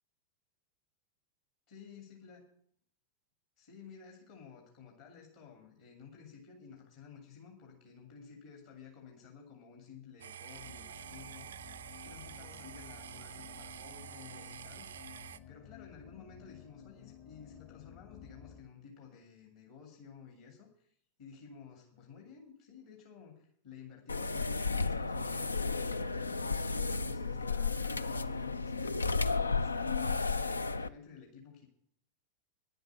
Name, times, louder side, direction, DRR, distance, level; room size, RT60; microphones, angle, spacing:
voice 1, 1.7-2.4 3.6-15.1 15.5-26.5 26.8-31.7, left 6 dB, 55° left, 1 dB, 2.5 m, -53 dB
sound 1, 10.2-15.4, right 9 dB, 65° right, 0.4 m, -48 dB
sound 2, 10.5-18.6, left 9 dB, 40° left, 1.1 m, -54 dB
sound 3, 24.1-30.9, left 4 dB, 80° left, 0.4 m, -33 dB
10.0 x 8.0 x 8.9 m, 0.64 s
figure-of-eight pair, 90°, 0 cm